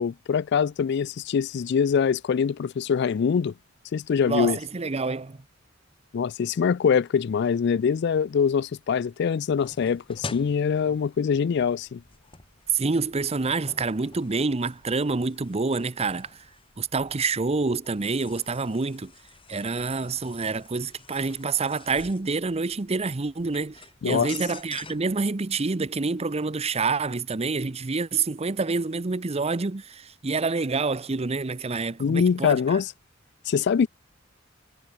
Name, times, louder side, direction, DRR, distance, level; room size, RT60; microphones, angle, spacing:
voice 1, 0.0-3.5 3.9-4.6 6.1-12.0 24.0-24.3 32.0-32.9 33.5-33.9, left 6 dB, 60° left, 0.4 m, -24 dB
voice 2, 4.3-5.4 12.7-16.4 16.8-19.1 19.5-32.8, right 4 dB, 30° right, 0.7 m, -27 dB
sound 1, 9.6-25.2, left 3 dB, 25° left, 3.9 m, -47 dB
head